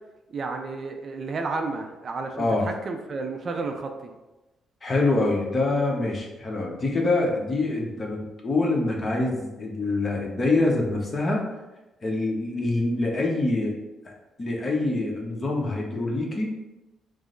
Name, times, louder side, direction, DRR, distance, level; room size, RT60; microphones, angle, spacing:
voice 1, 0.3-4.1, right 3 dB, 45° right, 5 dB, 0.4 m, -32 dB
voice 2, 2.4-2.7 4.8-11.5 12.0-13.8 14.0-14.1 14.4-16.5, left 2 dB, 35° left, -1 dB, 0.9 m, -25 dB
4.9 x 2.1 x 3.8 m, 1.1 s
cardioid pair, 90°, 0 cm